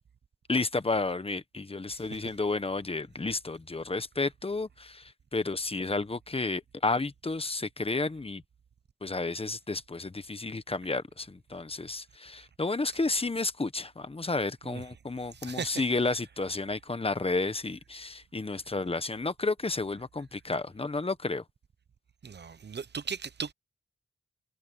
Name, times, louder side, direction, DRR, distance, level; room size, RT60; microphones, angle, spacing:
voice 1, 0.5-8.4 9.0-21.4, left 3 dB, 30° left, 1.1 m, -31 dB
voice 2, 15.3-15.8 22.2-23.5, right 6 dB, 55° right, 1.0 m, -37 dB
cardioid pair, 70°, 21 cm